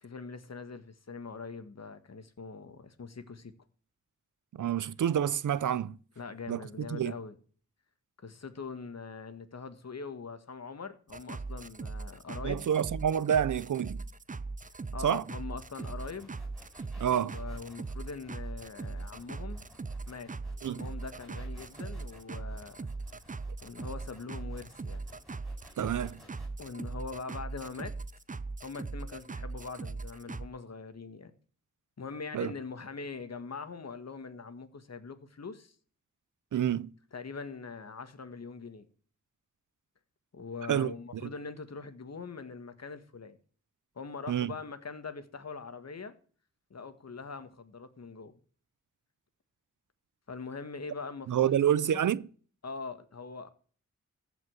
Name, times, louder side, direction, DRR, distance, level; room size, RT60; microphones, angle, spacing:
voice 1, 0.0-3.5 6.2-7.4 8.2-12.7 14.7-16.3 17.1-19.6 20.1-20.3 20.6-22.9 23.6-25.0 26.6-27.9 28.6-31.3 32.0-35.7 37.1-38.9 40.3-43.4 43.9-46.1 46.7-48.3 50.3-52.0 52.6-53.5, left 4 dB, 60° left, 1.7 m, -42 dB
voice 2, 4.5-6.0 6.5-7.1 12.4-14.0 15.0-15.2 17.0-17.4 20.6-20.9 25.8-26.2 32.3-32.5 36.5-36.9 40.7-41.3 44.3-44.5 51.3-52.2, right 9 dB, 90° right, 0.6 m, -28 dB
sound 1, 11.1-30.5, right 3 dB, 25° right, 0.7 m, -40 dB
sound 2, 15.8-26.5, equal, ahead, 5.3 m, -57 dB
14.5 x 5.5 x 7.8 m
cardioid pair, 65°, 30 cm